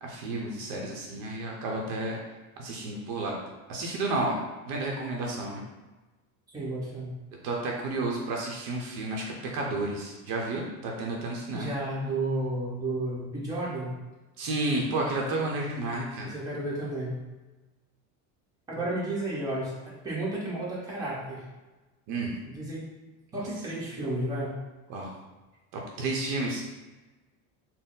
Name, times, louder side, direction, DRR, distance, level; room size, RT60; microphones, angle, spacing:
voice 1, 0.0-2.2 2.6-3.3 3.7-4.4 4.7-5.6 7.4-11.7 14.4-16.3 22.1-22.3 23.3-23.4 24.9-25.1 25.7-26.6, right 2 dB, 55° right, -1 dB, 0.7 m, -31 dB
voice 2, 6.5-7.1 11.5-13.9 16.2-17.2 18.7-19.7 20.0-21.4 22.4-22.8 23.3-24.6, right 1 dB, 10° right, -7 dB, 0.9 m, -32 dB
4.2 x 2.0 x 3.8 m, 1.2 s
cardioid pair, 155°, 39 cm